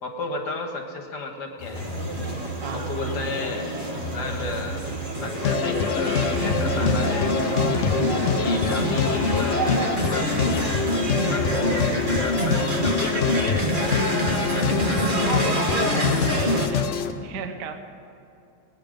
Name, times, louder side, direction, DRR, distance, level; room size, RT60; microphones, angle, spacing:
voice 1, 0.0-1.8 2.7-7.3 8.0-10.7 11.3-13.7 14.2-15.5, left 3 dB, 60° left, 3 dB, 1.9 m, -33 dB
sound 1, 1.6-13.3, right 2 dB, 40° left, 0.7 m, -35 dB
sound 2, 1.7-16.7, equal, 35° right, 1.0 m, -26 dB
sound 3, 5.4-17.1, left 7 dB, 80° left, 0.6 m, -26 dB
voice 2, 16.2-17.7, right 6 dB, 65° right, 6 dB, 1.3 m, -36 dB
19.5 x 9.3 x 5.1 m, 2.8 s
omnidirectional pair, 2.2 m